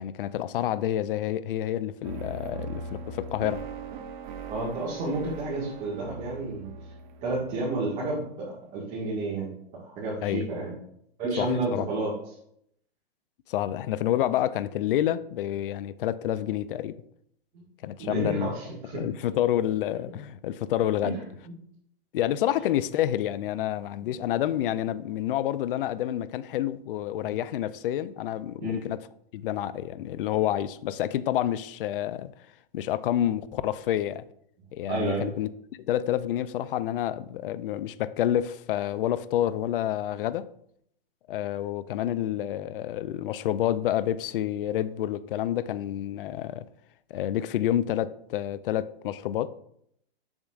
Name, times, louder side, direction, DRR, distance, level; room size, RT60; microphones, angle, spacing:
voice 1, 0.0-3.6 10.2-10.5 11.4-11.9 13.5-17.0 17.8-18.5 18.9-21.2 22.1-29.0 29.3-32.3 32.7-34.2 34.7-35.5 35.8-40.5 41.3-46.7 47.1-49.5, left 12 dB, 60° left, 0.4 m, -28 dB
sound 1, 2.0-8.1, right 4 dB, 50° right, 0.8 m, -40 dB
voice 2, 4.5-6.7 7.2-9.5 9.8-10.7 11.2-12.1 17.5-17.6 18.0-19.0 21.0-21.1 21.4-21.5 24.0-24.2 28.6-28.9 34.9-35.3, right 2 dB, 25° right, 1.7 m, -31 dB
7.1 x 6.5 x 2.4 m
hypercardioid pair, 150°, 31 cm